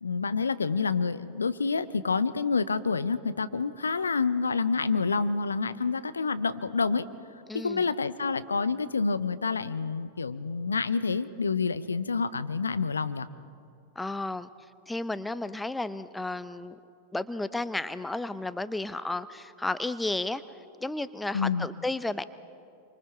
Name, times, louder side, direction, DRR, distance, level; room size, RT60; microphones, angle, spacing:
voice 1, 0.0-7.1 7.5-13.3 21.3-21.7, left 4 dB, 75° left, 14 dB, 0.7 m, -28 dB
voice 2, 7.5-7.9 14.0-14.5 14.9-16.8 17.1-20.4 20.8-22.2, left 2 dB, 5° left, 14 dB, 0.6 m, -33 dB
27.5 x 24.5 x 4.6 m, 2.5 s
figure-of-eight pair, 90°, 0 cm